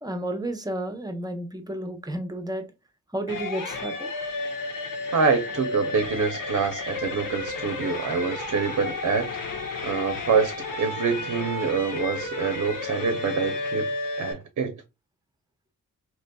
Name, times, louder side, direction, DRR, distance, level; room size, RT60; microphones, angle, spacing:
voice 1, 0.0-2.6 3.1-4.1, right 1 dB, 10° right, 0.6 m, -31 dB
sound 1, 3.3-14.3, left 3 dB, 75° left, 0.9 m, -32 dB
voice 2, 5.1-9.3 9.8-13.9 14.2-14.8, right 5 dB, 55° right, 0.6 m, -26 dB
4.0 x 2.9 x 2.2 m
wide cardioid pair, 125°, 33 cm